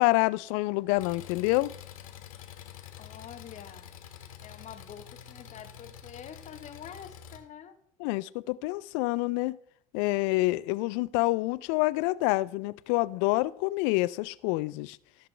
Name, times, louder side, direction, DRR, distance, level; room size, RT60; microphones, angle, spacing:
voice 1, 0.0-1.7 8.0-9.6 9.9-15.0, left 21 dB, 60° left, 0.4 m, -27 dB
Engine, 1.0-7.4, left 10 dB, 75° left, 1.0 m, -47 dB
voice 2, 3.0-3.9 4.4-7.8, left 8 dB, 40° left, 1.2 m, -46 dB
14.5 x 6.7 x 3.3 m
hypercardioid pair, 65°, 18 cm